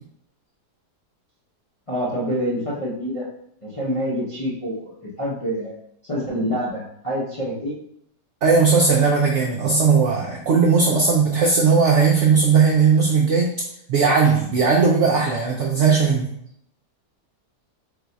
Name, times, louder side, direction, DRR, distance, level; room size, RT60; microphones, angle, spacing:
voice 1, 1.9-3.3 3.6-5.8 6.1-7.7, equal, 40° left, -8 dB, 0.4 m, -26 dB
voice 2, 8.4-13.5 13.9-16.3, right 5 dB, 75° right, -1 dB, 0.6 m, -17 dB
4.0 x 2.3 x 3.9 m, 0.72 s
omnidirectional pair, 1.8 m